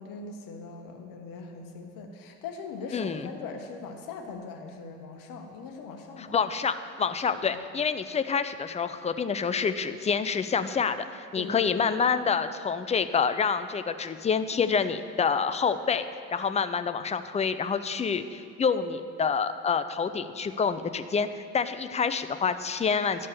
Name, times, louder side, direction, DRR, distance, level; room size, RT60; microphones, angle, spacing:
voice 1, 0.0-6.3 7.4-7.6 11.4-11.8, left 4 dB, 55° left, 3 dB, 1.4 m, -41 dB
voice 2, 2.9-3.3 6.2-23.3, left 6 dB, 15° left, 11 dB, 0.5 m, -27 dB
11.5 x 5.3 x 6.7 m, 2.4 s
hypercardioid pair, 60°, 39 cm